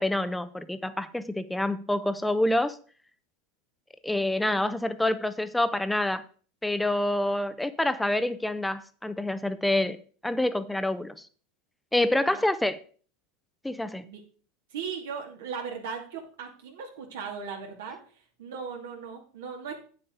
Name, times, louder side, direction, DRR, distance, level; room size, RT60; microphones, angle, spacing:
voice 1, 0.0-2.8 4.0-6.2 6.6-11.2 11.9-12.8 13.6-14.0, left 1 dB, 5° left, 13 dB, 0.7 m, -27 dB
voice 2, 14.7-18.0 18.4-19.8, right 6 dB, 80° right, 1 dB, 2.3 m, -37 dB
8.7 x 7.8 x 3.8 m, 0.43 s
hypercardioid pair, 95°, 0 cm